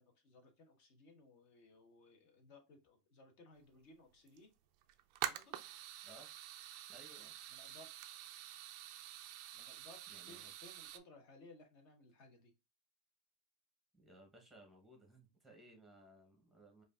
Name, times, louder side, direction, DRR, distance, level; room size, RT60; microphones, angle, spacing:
voice 1, 0.0-4.5 5.2-5.5 7.2-8.2 9.5-12.5, left 2 dB, 40° left, 1.1 m, -61 dB
sound 1, 3.7-3.8 4.1-4.4 4.8-11.0, right 13 dB, 45° right, 0.4 m, -47 dB
voice 2, 6.9-7.3 10.1-10.5 13.9-16.8, right 1 dB, ahead, 1.0 m, -61 dB
4.9 x 2.5 x 2.4 m
supercardioid pair, 160°, 4 cm